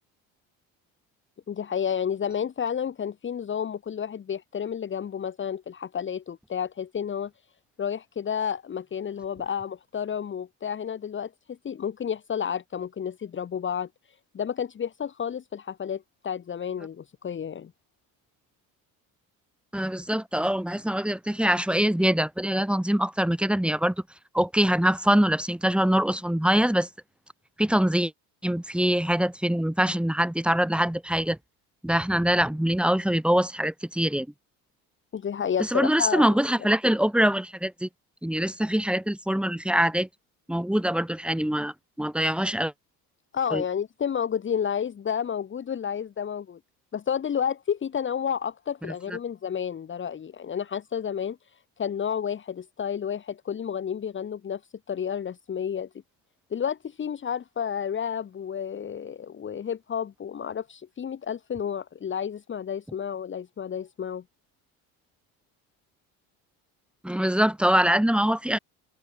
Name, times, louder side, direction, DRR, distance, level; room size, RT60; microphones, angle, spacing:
voice 1, 1.5-7.3 7.8-13.9 14.3-17.7 35.1-36.3 43.3-46.6 46.9-51.4 51.8-54.6 54.9-55.9 56.5-64.2, left 8 dB, 30° left, 1.4 m, -31 dB
voice 2, 19.7-23.9 24.3-26.9 27.6-28.1 28.4-31.4 31.8-34.3 35.6-37.9 38.2-40.1 40.5-42.7 43.5-43.6 48.8-48.9 67.0-68.6, equal, 5° right, 2.8 m, -24 dB
open air
cardioid pair, 105°, 38 cm